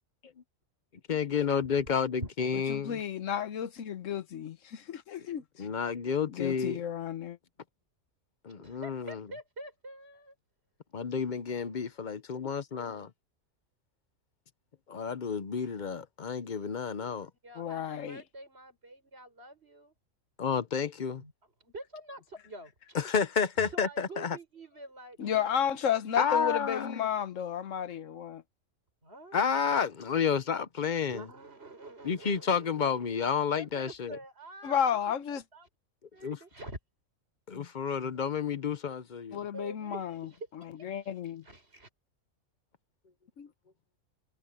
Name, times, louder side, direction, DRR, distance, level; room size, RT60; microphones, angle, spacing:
voice 1, 1.1-3.0 5.6-6.8 8.4-9.2 10.9-13.1 14.9-17.3 20.4-21.2 22.9-24.4 26.2-27.1 29.3-31.3 32.0-34.2 36.2-36.4 37.5-39.4, left 6 dB, 40° left, 0.7 m, -30 dB
voice 2, 2.5-5.7 6.3-7.4 17.6-18.2 25.2-28.4 34.6-35.4 39.3-40.3 40.8-41.4 43.4-43.5, left 8 dB, 65° left, 1.3 m, -32 dB
voice 3, 8.6-10.3 17.4-19.9 21.2-21.3 21.6-23.0 23.7-25.6 29.0-29.4 31.1-33.0 33.5-34.8 35.3-35.7 36.1-36.8 39.5-41.9, right 1 dB, 45° right, 6.1 m, -46 dB
omnidirectional pair, 1.5 m